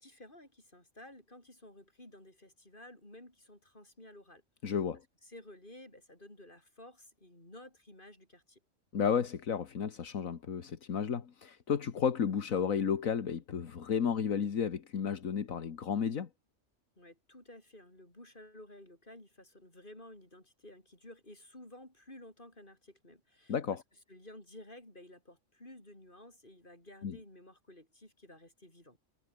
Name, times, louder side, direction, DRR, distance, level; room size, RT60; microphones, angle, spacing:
voice 1, 0.0-4.8 5.2-8.6 17.0-23.8 24.1-29.0, left 1 dB, 35° left, 7.4 m, -54 dB
voice 2, 4.6-5.0 8.9-16.3 23.5-23.8 27.0-27.2, left 7 dB, 80° left, 1.8 m, -32 dB
omnidirectional pair, 1.4 m